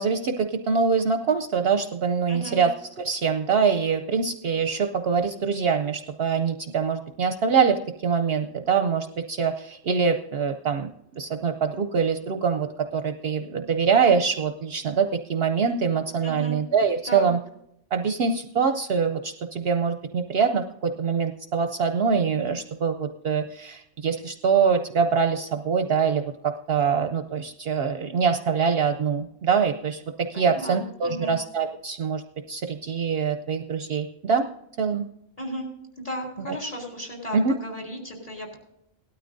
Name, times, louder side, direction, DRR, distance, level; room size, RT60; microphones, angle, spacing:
voice 1, 0.0-2.7 3.0-10.9 11.2-17.4 17.9-30.0 30.3-32.2 32.5-34.5 34.8-35.1 37.3-37.5, right 6 dB, 60° right, 7 dB, 0.8 m, -24 dB
voice 2, 2.3-2.6 16.2-16.6 17.0-17.3 30.3-31.4 35.4-35.7 36.0-38.6, equal, 30° left, 0 dB, 3.3 m, -35 dB
18.0 x 12.5 x 2.6 m, 0.78 s
omnidirectional pair, 1.3 m